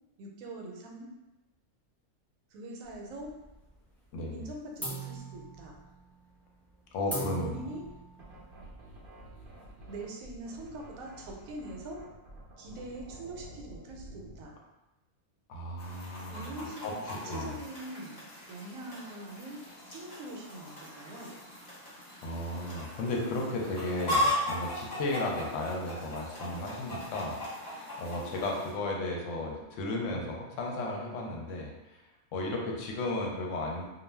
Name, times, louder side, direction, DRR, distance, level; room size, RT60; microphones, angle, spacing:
voice 1, 0.2-1.1 2.5-3.3 4.3-5.7 7.0-7.8 9.9-12.1 12.6-14.5 16.3-18.2 18.5-19.6 19.9-21.3, right 2 dB, 75° right, 0 dB, 1.0 m, -43 dB
sound 1, 2.8-3.7 4.0-4.4 4.8-10.0, right 2 dB, 5° left, 0.3 m, -42 dB
voice 2, 6.9-7.6 15.5-16.5 16.8-17.5 22.2-27.4 28.0-32.0 32.3-33.9, left 2 dB, 70° left, -1 dB, 0.9 m, -34 dB
sound 2, 7.9-14.5, right 1 dB, 60° right, 0.6 m, -50 dB
Chicken rooster, 15.8-28.7, left 1 dB, 35° left, 0.9 m, -37 dB
2.3 x 2.2 x 3.2 m, 1.0 s
omnidirectional pair, 1.5 m